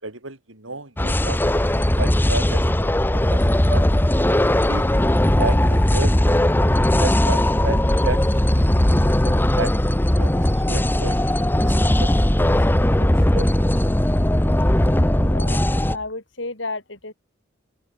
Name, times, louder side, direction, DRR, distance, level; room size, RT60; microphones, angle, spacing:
voice 1, 0.0-3.4 3.7-4.0 4.7-4.9 5.3-6.1 7.0-8.2 8.5-8.9 9.2-9.7 10.2-11.2 11.6-12.4 13.0-13.5, right 3 dB, 80° right, 4.6 m, -32 dB
sound 1, 1.0-16.0, left 1 dB, 10° left, 0.8 m, -18 dB
voice 2, 15.1-15.6 15.9-17.1, left 2 dB, 65° left, 5.4 m, -32 dB
open air
head